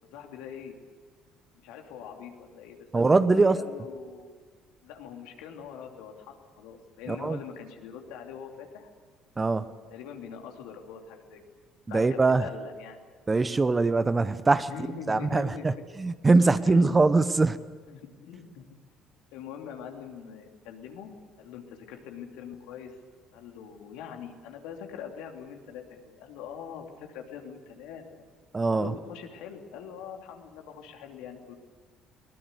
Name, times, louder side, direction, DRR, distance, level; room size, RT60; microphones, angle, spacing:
voice 1, 0.1-0.8 1.6-4.4 4.8-8.9 9.9-11.4 11.9-13.0 14.7-15.7 16.6-17.3 17.9-18.6 19.3-21.1 21.4-23.0 23.3-28.2 28.7-31.5, left 7 dB, 70° left, 3 dB, 3.0 m, -43 dB
voice 2, 2.9-3.6 7.1-7.4 9.4-9.7 11.9-12.5 13.3-14.7 15.1-15.7 16.0-17.6 28.5-28.9, right 3 dB, 25° right, 13 dB, 1.1 m, -22 dB
22.5 x 20.0 x 8.2 m, 1.5 s
hypercardioid pair, 60°, 0 cm